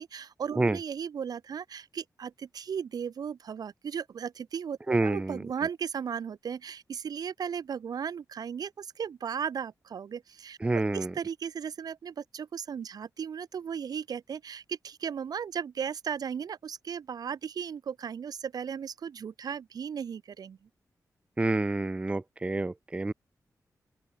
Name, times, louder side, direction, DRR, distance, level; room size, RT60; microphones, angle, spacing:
voice 1, 0.0-10.6 10.9-20.6, right 7 dB, 80° right, 1.1 m, -36 dB
voice 2, 4.9-5.4 10.6-11.1 21.4-23.1, right 2 dB, 20° right, 0.5 m, -28 dB
open air
wide cardioid pair, 105°, 6 cm